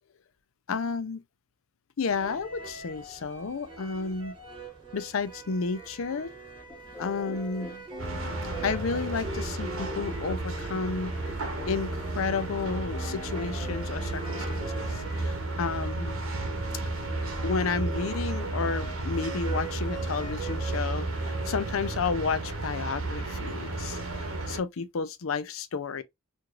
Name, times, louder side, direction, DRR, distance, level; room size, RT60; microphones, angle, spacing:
voice 1, 0.7-1.2 2.0-4.4 4.9-6.3 7.0-7.8 8.6-11.1 11.7-16.2 17.4-26.0, left 5 dB, 70° left, 0.5 m, -32 dB
sound 1, 2.1-22.0, right 4 dB, 25° right, 2.4 m, -44 dB
sound 2, 6.7-14.9, left 1 dB, 5° left, 0.9 m, -43 dB
sound 3, 8.0-24.6, right 2 dB, 75° right, 1.2 m, -33 dB
4.7 x 2.6 x 2.3 m
head